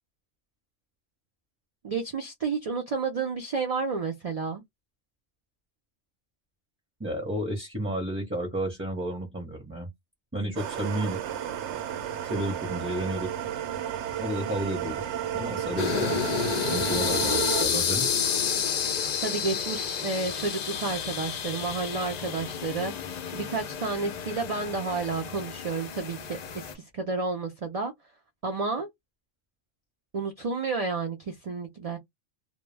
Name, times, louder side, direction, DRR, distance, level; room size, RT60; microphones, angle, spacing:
voice 1, 1.8-4.6 19.2-22.9 23.3-26.4 26.7-27.9 28.4-28.9 30.1-32.0, right 4 dB, 55° right, 0.4 m, -31 dB
voice 2, 7.0-9.9 10.3-11.3 12.2-13.3 13.9-15.0 15.3-16.2 16.7-18.1, right 1 dB, 15° right, 0.7 m, -32 dB
sound 1, 10.6-17.7, right 10 dB, 75° right, 0.9 m, -32 dB
sound 2, 15.8-26.7, left 7 dB, 60° left, 0.4 m, -30 dB
2.2 x 2.1 x 3.2 m
omnidirectional pair, 1.2 m